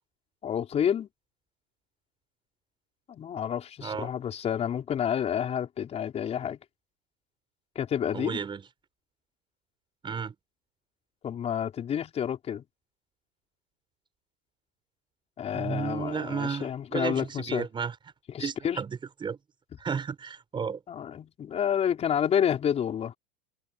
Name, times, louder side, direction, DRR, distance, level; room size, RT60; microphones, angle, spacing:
voice 1, 0.4-1.1 3.1-6.6 7.8-8.4 11.2-12.6 15.4-17.7 18.3-18.8 20.9-23.2, left 9 dB, 30° left, 5.2 m, -29 dB
voice 2, 8.1-8.6 10.0-10.3 15.5-17.9 18.4-19.4 19.8-20.8, right 6 dB, 25° right, 6.3 m, -33 dB
supercardioid pair, 120°, 21 cm